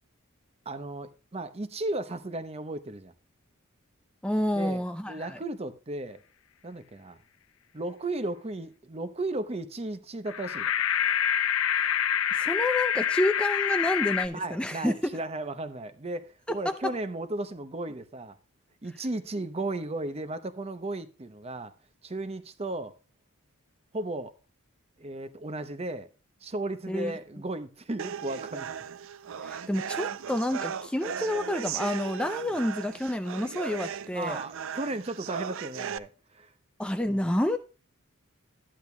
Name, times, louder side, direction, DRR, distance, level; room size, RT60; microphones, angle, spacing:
voice 1, 0.7-3.1 4.5-6.2 6.6-7.2 7.7-11.3 14.3-18.4 18.8-21.7 22.0-23.0 23.9-24.3 25.0-26.1 26.4-28.7 34.1-36.5 37.1-37.3, right 2 dB, 30° right, 0.7 m, -35 dB
voice 2, 4.2-5.4 11.6-12.0 12.3-15.1 26.9-27.1 29.4-34.4 36.8-37.6, left 1 dB, 5° left, 0.4 m, -29 dB
sound 1, 10.3-14.3, left 9 dB, 65° left, 0.5 m, -26 dB
sound 2, 28.0-36.0, right 8 dB, 65° right, 0.4 m, -37 dB
12.5 x 10.0 x 2.2 m
head